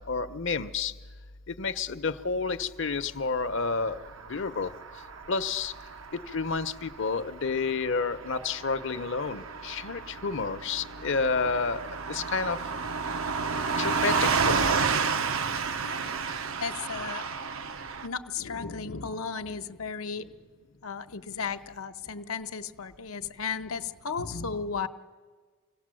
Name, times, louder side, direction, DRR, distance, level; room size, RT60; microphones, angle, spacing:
voice 1, 0.1-0.9 1.5-4.0 4.3-4.7 5.3-5.7 6.3-12.6 13.8-14.7, left 4 dB, 60° left, 11 dB, 0.8 m, -30 dB
Car passing by / Truck, 3.7-18.1, right 5 dB, 70° right, 0.8 m, -31 dB
voice 2, 15.8-17.2 18.0-20.4 20.8-24.9, left 5 dB, 85° left, 8 dB, 1.0 m, -35 dB
26.0 x 17.5 x 7.7 m, 1.5 s
head